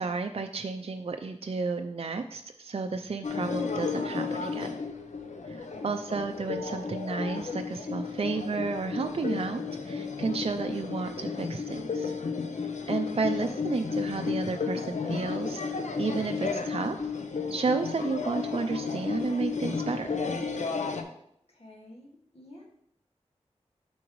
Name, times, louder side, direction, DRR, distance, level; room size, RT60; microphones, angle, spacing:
voice 1, 0.0-4.7 5.4-12.1 12.9-15.6 16.0-17.0 17.5-20.1, right 4 dB, 55° right, 6 dB, 0.4 m, -32 dB
sound 1, 3.2-21.0, left 5 dB, 85° left, 0.7 m, -33 dB
voice 2, 5.5-6.0 21.5-22.1 22.3-22.6, left 1 dB, 55° left, -2 dB, 2.0 m, -50 dB
7.5 x 6.0 x 3.1 m, 0.72 s
wide cardioid pair, 60°, 12 cm